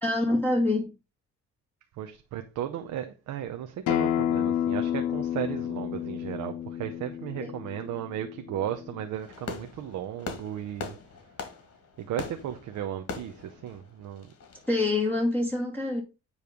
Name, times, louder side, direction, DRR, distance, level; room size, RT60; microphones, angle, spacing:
voice 1, 0.0-0.9 7.4-7.5 14.7-16.0, left 2 dB, 5° left, 2.4 m, -25 dB
voice 2, 2.0-11.0 12.0-14.3, right 10 dB, 80° right, 0.9 m, -35 dB
Acoustic guitar, 3.9-9.1, left 10 dB, 85° left, 0.8 m, -30 dB
Fireworks, 9.1-14.8, left 4 dB, 55° left, 2.1 m, -41 dB
9.6 x 3.3 x 5.1 m
cardioid pair, 90°, 30 cm